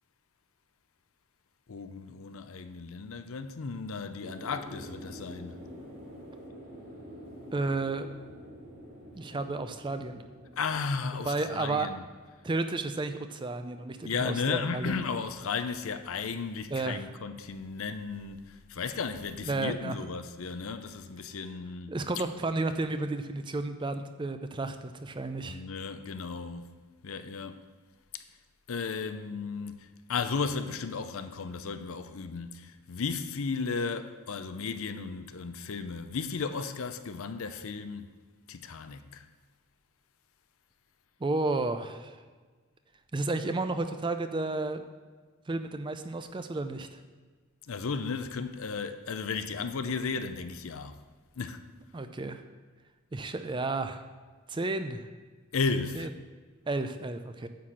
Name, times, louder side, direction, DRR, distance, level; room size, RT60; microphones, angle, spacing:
voice 1, 1.7-5.6 10.5-12.0 14.0-22.2 25.4-26.7 27.0-27.6 28.1-28.2 28.7-38.1 38.5-39.3 47.6-51.0 51.4-51.6 55.5-56.1, left 5 dB, 70° left, 0.6 m, -34 dB
sound 1, 4.2-13.5 13.7-13.8, equal, 40° right, 2.5 m, -48 dB
voice 2, 7.5-8.1 9.2-10.2 11.2-11.9 12.4-15.0 16.7-17.0 19.4-20.0 21.9-25.6 41.2-42.2 43.1-44.9 45.5-47.0 51.9-52.4 53.1-54.0 54.5-55.0 56.0-56.1 56.7-57.5, right 3 dB, 20° right, 0.4 m, -32 dB
9.3 x 4.3 x 7.3 m
head